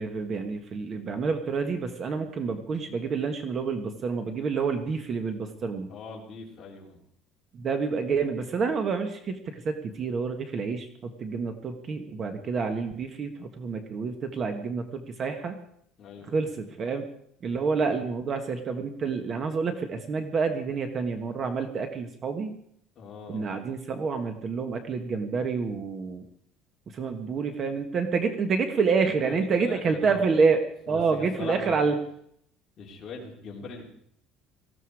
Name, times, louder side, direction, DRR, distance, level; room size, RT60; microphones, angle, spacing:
voice 1, 0.0-5.9 7.5-15.6 16.3-17.1 17.4-22.5 23.3-26.2 26.9-30.6 30.9-31.9, right 5 dB, 30° right, 7 dB, 1.4 m, -28 dB
voice 2, 5.9-7.0 16.0-16.4 23.0-23.5 29.2-30.3 30.9-31.9 32.8-33.8, left 4 dB, 30° left, -1 dB, 3.6 m, -41 dB
19.0 x 15.0 x 4.9 m, 0.67 s
cardioid pair, 160°, 0 cm